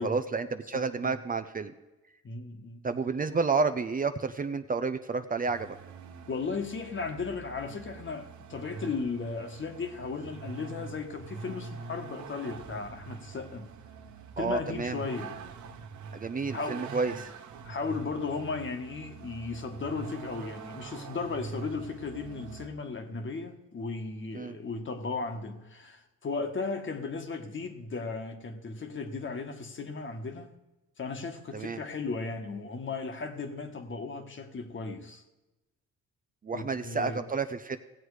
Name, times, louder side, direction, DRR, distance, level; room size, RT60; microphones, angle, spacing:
voice 1, 0.0-1.7 2.8-5.8 14.4-15.0 16.1-17.3 24.3-24.6 31.5-31.8 36.4-37.8, right 4 dB, 30° right, 0.6 m, -30 dB
voice 2, 0.7-1.1 2.2-2.8 6.3-13.7 14.4-15.4 16.5-17.0 17.6-30.5 31.0-35.2 36.5-37.2, left 4 dB, 40° left, 1.5 m, -36 dB
Vehicle, 5.5-22.7, right 5 dB, 75° right, 1.1 m, -44 dB
17.0 x 7.9 x 4.9 m
cardioid pair, 90°, 30 cm